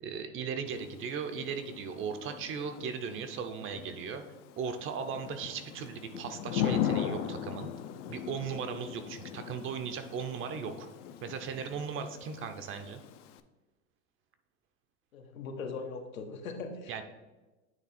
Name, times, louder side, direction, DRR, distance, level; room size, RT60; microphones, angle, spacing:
voice 1, 0.0-4.2 4.6-7.7 8.1-10.9 11.2-13.0 16.9-17.0, right 6 dB, 30° right, 8 dB, 0.6 m, -37 dB
Thunder / Rain, 0.7-13.4, left 9 dB, 60° left, 0.6 m, -39 dB
voice 2, 15.1-16.9, left 4 dB, 85° left, 4 dB, 1.1 m, -40 dB
9.0 x 3.3 x 4.2 m, 1.1 s
hypercardioid pair, 115°, 41 cm